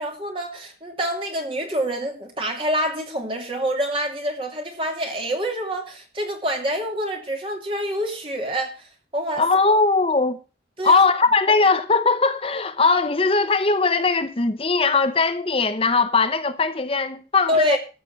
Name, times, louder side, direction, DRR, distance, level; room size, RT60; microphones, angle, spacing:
voice 1, 0.0-9.4 10.8-11.0 17.5-17.8, equal, 30° right, 2.5 m, -26 dB
voice 2, 9.4-10.4 10.8-17.8, left 4 dB, 30° left, 0.8 m, -20 dB
13.5 x 6.7 x 6.5 m
head